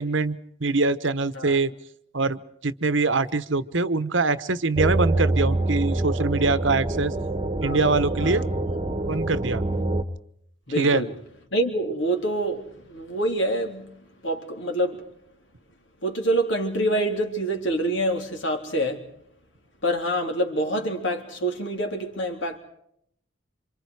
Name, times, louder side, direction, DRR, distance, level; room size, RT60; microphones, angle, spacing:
voice 1, 0.0-1.7 2.1-7.1 7.6-8.4 9.1-9.6 10.8-11.0, right 3 dB, 70° right, 1.1 m, -23 dB
sound 1, 4.8-10.0, right 2 dB, 25° right, 1.2 m, -25 dB
voice 2, 7.6-8.4 10.7-11.1 11.5-13.9 14.2-15.0 16.0-19.1 19.8-22.6, right 1 dB, 70° left, 3.5 m, -26 dB
28.0 x 26.5 x 4.8 m
head